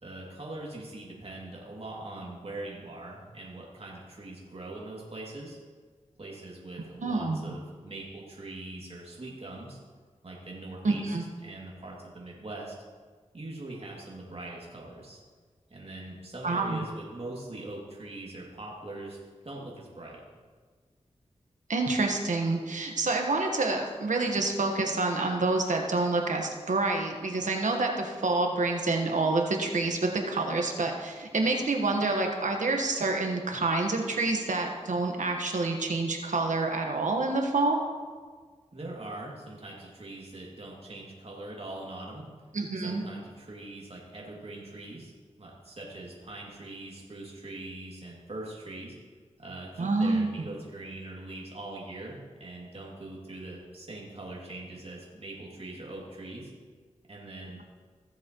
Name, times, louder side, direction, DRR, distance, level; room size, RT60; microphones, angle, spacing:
voice 1, 0.0-5.6 6.2-9.8 10.2-11.2 11.4-12.7 13.3-15.2 15.7-20.2 38.7-42.3 42.8-45.1 45.4-48.9 49.4-56.5 57.1-57.6, right 2 dB, 50° right, -4 dB, 2.5 m, -42 dB
voice 2, 7.0-7.4 10.8-11.2 16.4-16.8 21.7-37.8 42.5-43.0 49.8-50.3, right 3 dB, 75° right, 2 dB, 1.3 m, -27 dB
16.0 x 7.3 x 3.1 m, 1.5 s
cardioid pair, 45°, 13 cm